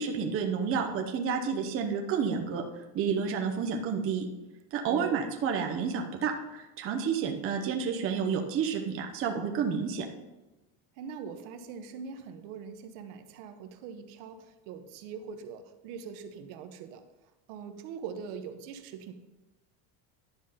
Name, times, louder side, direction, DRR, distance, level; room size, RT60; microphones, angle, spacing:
voice 1, 0.0-2.6 2.9-4.3 4.7-10.0, right 6 dB, 30° right, 3 dB, 0.9 m, -30 dB
voice 2, 4.8-5.2 11.0-17.0 17.5-19.1, right 6 dB, 70° right, 7 dB, 1.1 m, -42 dB
11.0 x 5.1 x 5.7 m, 1.0 s
cardioid pair, 175°, 45 cm